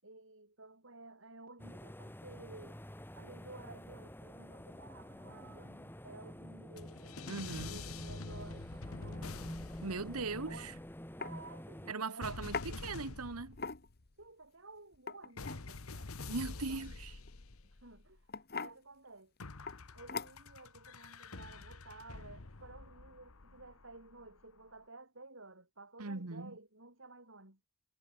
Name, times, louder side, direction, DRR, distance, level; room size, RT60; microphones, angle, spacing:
voice 1, 0.0-2.8 3.1-9.5 10.4-10.8 11.2-12.8 14.2-16.9 17.7-19.6 19.9-27.6, right 2 dB, 60° right, 7.4 m, -54 dB
sound 1, 1.6-11.9, equal, 10° left, 2.8 m, -48 dB
sound 2, 6.8-11.0 12.2-14.1 15.4-18.2 19.4-24.4, left 3 dB, 75° left, 1.3 m, -47 dB
voice 2, 7.3-7.8 9.8-10.7 11.9-13.6 16.3-17.2 26.0-26.6, right 3 dB, 90° right, 1.4 m, -40 dB
sound 3, 10.5-10.7 11.2-11.4 12.5-12.7 13.5-14.1 14.9-15.6 17.3-17.5 18.3-18.8 19.7-19.8 20.1-20.6, left 4 dB, 45° left, 2.2 m, -40 dB
head